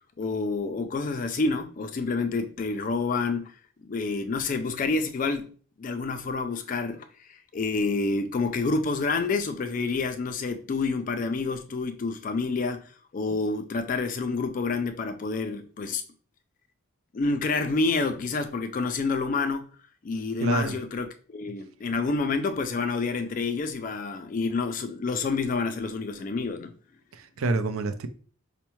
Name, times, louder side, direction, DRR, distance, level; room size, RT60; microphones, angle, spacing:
voice 1, 0.2-3.5 3.8-5.5 5.8-12.8 13.1-16.0 17.1-19.7 20.0-26.7, left 3 dB, 40° left, 0.3 m, -28 dB
voice 2, 20.4-20.7 27.1-28.1, right 3 dB, 75° right, 0.4 m, -27 dB
4.5 x 2.1 x 2.9 m
head